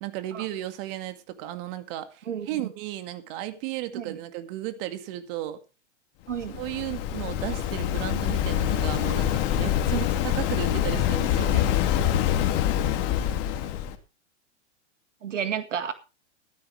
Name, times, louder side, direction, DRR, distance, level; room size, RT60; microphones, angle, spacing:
voice 1, 0.0-5.6 6.6-11.7, right 14 dB, 50° right, 2.2 m, -35 dB
voice 2, 2.3-2.7 3.9-4.2 6.3-6.6 9.9-10.1 15.2-15.9, right 8 dB, 90° right, 1.9 m, -32 dB
Waves surf, 6.3-13.9, left 11 dB, 50° left, 2.5 m, -25 dB
15.0 x 12.5 x 3.4 m
hypercardioid pair, 120°, 36 cm